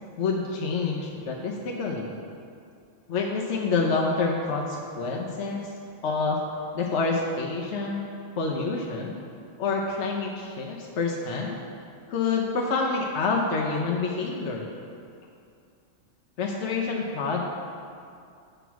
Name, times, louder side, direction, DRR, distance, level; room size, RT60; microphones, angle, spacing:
voice 1, 0.2-2.1 3.1-5.7 6.0-6.4 6.7-8.1 8.4-9.2 9.6-11.6 12.1-14.6 16.4-17.4, left 4 dB, 65° left, -1 dB, 1.0 m, -27 dB
8.0 x 6.0 x 4.7 m, 2.4 s
omnidirectional pair, 1.4 m